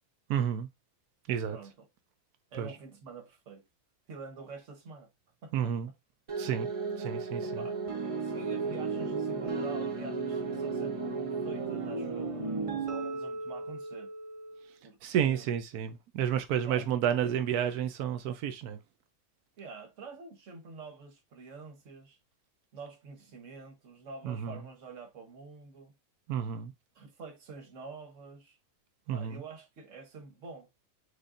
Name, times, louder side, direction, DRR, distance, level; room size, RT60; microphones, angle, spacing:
voice 1, 0.3-0.7 1.3-1.6 2.6-2.7 5.5-5.9 6.4-6.7 7.0-7.4 15.0-18.8 24.2-24.6 26.3-26.7 29.1-29.4, right 9 dB, 90° right, 1.2 m, -30 dB
voice 2, 1.5-1.9 2.5-3.6 4.1-5.1 5.4-5.7 7.4-7.8 8.2-11.0 11.4-12.4 12.7-14.1 14.8-15.5 16.6-17.4 19.6-22.2 22.7-25.9 26.9-28.6 29.1-30.7, right 4 dB, 60° right, 1.4 m, -47 dB
sound 1, 6.3-14.7, right 4 dB, 35° right, 0.6 m, -34 dB
4.9 x 4.1 x 2.5 m
omnidirectional pair, 1.6 m